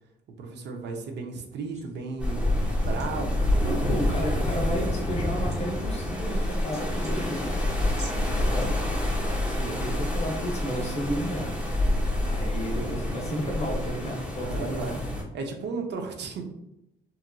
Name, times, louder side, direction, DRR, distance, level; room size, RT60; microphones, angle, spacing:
voice 1, 0.3-3.8 9.5-9.8 14.4-15.0 15.3-16.4, right 4 dB, 60° right, 3 dB, 0.5 m, -35 dB
sound 1, 1.7-8.1, right 2 dB, 35° right, 0.9 m, -51 dB
sound 2, 2.2-15.2, left 1 dB, 5° right, 0.8 m, -27 dB
voice 2, 3.6-7.7 8.3-8.7 9.8-11.5 12.2-15.0, equal, 35° left, -1 dB, 0.7 m, -32 dB
2.9 x 2.4 x 2.2 m, 0.84 s
cardioid pair, 90°, 20 cm